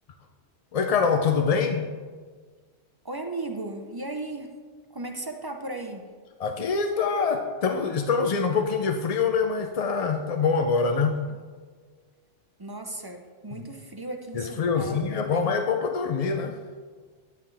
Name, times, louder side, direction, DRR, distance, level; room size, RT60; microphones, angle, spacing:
voice 1, 0.7-1.9 6.4-11.2 13.5-13.6 14.3-16.6, left 5 dB, 50° left, 5 dB, 0.4 m, -25 dB
voice 2, 3.0-4.6 4.9-6.1 12.6-15.6, right 2 dB, 30° right, 4 dB, 0.5 m, -36 dB
11.0 x 9.0 x 3.3 m, 1.5 s
omnidirectional pair, 1.2 m